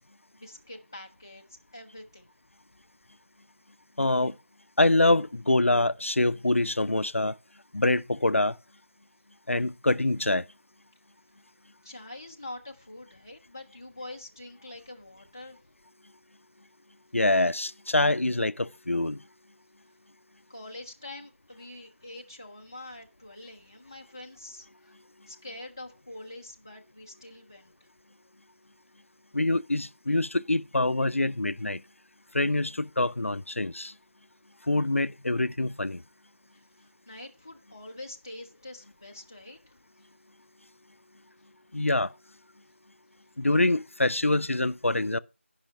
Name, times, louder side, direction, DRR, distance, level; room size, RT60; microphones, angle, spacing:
voice 1, 0.3-2.3 11.8-15.6 20.5-24.9 25.3-27.9 36.5-39.6, left 2 dB, 15° left, 0.6 m, -45 dB
voice 2, 4.0-4.3 4.8-7.3 7.7-8.6 9.5-10.4 17.1-19.2 29.3-31.8 32.3-33.9 34.7-36.0 41.7-42.1 43.4-45.2, left 2 dB, 85° left, 0.5 m, -25 dB
11.0 x 5.6 x 5.8 m
figure-of-eight pair, 170°, 7 cm